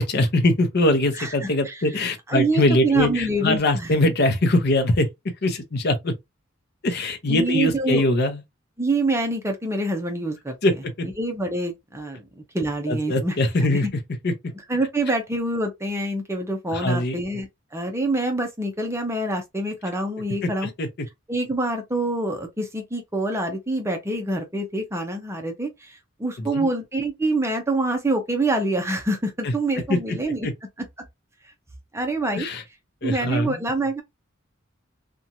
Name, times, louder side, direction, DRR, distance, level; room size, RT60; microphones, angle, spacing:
voice 1, 0.0-5.1 5.4-6.1 6.8-8.4 10.6-11.1 12.9-13.9 14.2-14.3 16.7-17.2 20.4-20.5 20.8-20.9 26.4-26.7 29.4-29.5 29.9-30.0 30.4-30.5 32.3-32.6 33.0-33.6, left 1 dB, 55° left, 0.7 m, -22 dB
voice 2, 1.2-1.8 2.3-3.9 7.3-8.0 8.8-10.5 11.2-13.4 13.6-13.8 14.7-20.7 21.3-30.5 31.9-32.5 33.0-34.0, right 2 dB, 15° right, 0.6 m, -26 dB
2.9 x 2.3 x 2.6 m
head